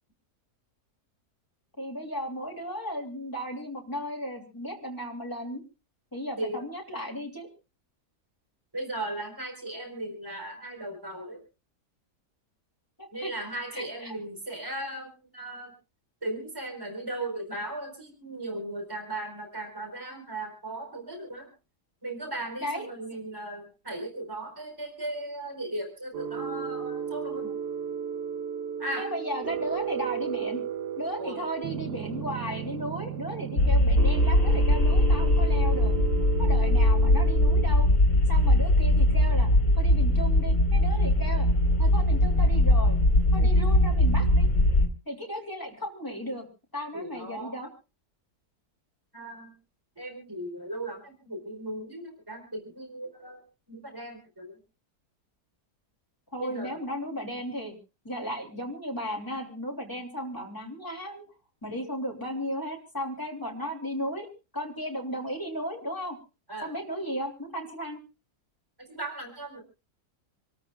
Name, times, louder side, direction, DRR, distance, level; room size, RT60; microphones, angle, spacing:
voice 1, 1.8-5.6 6.1-7.5 13.0-13.3 13.7-14.1 22.6-22.9 29.0-30.6 31.0-35.9 36.4-37.9 38.3-39.5 39.8-41.5 41.8-43.0 43.3-44.5 45.1-46.4 46.7-47.7 56.3-57.7 58.0-61.3 61.6-64.3 64.5-66.2 66.6-68.0, equal, 10° left, 0 dB, 3.1 m, -35 dB
voice 2, 8.7-11.4 13.1-15.7 16.2-21.5 22.0-27.5 28.8-29.1 31.2-31.4 43.4-43.5 46.9-47.6 49.1-49.5 50.0-53.4 53.7-54.5 56.4-56.8 66.5-66.7 68.8-69.6, right 1 dB, 15° right, 4 dB, 4.3 m, -37 dB
sound 1, 26.1-37.7, right 8 dB, 90° right, 1.7 m, -34 dB
sound 2, 33.6-44.9, left 1 dB, 50° left, 2.5 m, -21 dB
27.5 x 13.5 x 2.4 m, 0.32 s
omnidirectional pair, 1.7 m